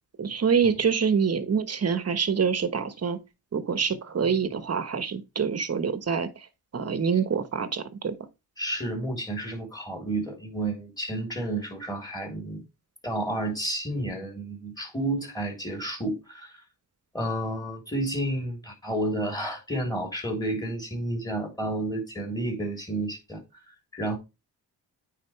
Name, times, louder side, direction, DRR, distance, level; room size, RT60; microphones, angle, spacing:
voice 1, 0.2-3.2 3.5-6.3 6.7-8.1, right 6 dB, 40° right, 1.3 m, -26 dB
voice 2, 8.6-12.6 13.0-16.6 17.1-23.4 23.7-24.2, right 1 dB, 10° left, 3.3 m, -31 dB
9.2 x 4.6 x 3.3 m
cardioid pair, 75°, 39 cm